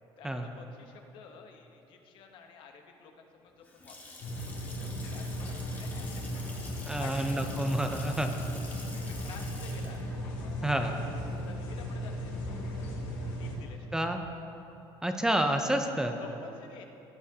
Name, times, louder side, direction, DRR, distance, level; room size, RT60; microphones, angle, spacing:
voice 1, 0.2-4.2 4.6-6.1 6.3-6.4 7.0-7.4 9.0-10.0 10.3-11.0 11.4-12.5 13.4-13.9 16.2-16.8, left 5 dB, 65° left, 4 dB, 0.9 m, -51 dB
Water tap faucet / Sink (filling or washing) / Splash splatter, 3.4-12.3, left 2 dB, 20° left, 1.4 m, -48 dB
sound 1, 4.2-13.5, equal, 85° left, 2.2 m, -36 dB
voice 2, 6.9-8.3 10.6-10.9 13.9-14.2 15.0-16.2, right 1 dB, 5° right, 5 dB, 0.4 m, -29 dB
16.5 x 8.8 x 2.8 m, 2.9 s
cardioid pair, 160°, 9 cm